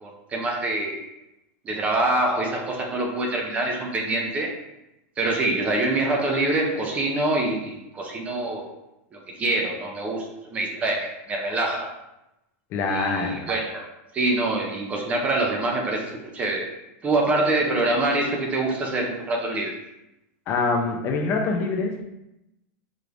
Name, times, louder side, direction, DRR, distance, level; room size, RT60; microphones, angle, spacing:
voice 1, 0.0-1.0 1.6-4.5 5.2-8.7 9.4-11.9 12.8-13.8 14.1-16.7 17.0-19.7, right 2 dB, 15° right, 1 dB, 0.5 m, -25 dB
voice 2, 12.7-13.5 20.5-22.0, left 3 dB, 30° left, 2 dB, 0.5 m, -25 dB
4.9 x 3.1 x 2.5 m, 0.91 s
supercardioid pair, 165°, 8 cm